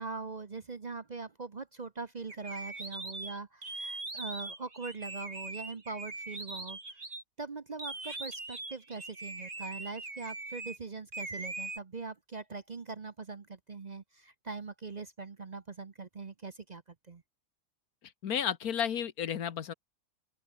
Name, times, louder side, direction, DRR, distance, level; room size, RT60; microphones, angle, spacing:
voice 1, 0.0-6.8 7.4-16.8 17.1-17.2, right 4 dB, 35° right, 0.8 m, -42 dB
sound 1, 2.3-7.2 7.8-10.8 11.1-11.8, right 2 dB, 55° right, 4.6 m, -41 dB
voice 2, 18.2-19.7, left 8 dB, 85° left, 1.7 m, -32 dB
open air
omnidirectional pair, 1.5 m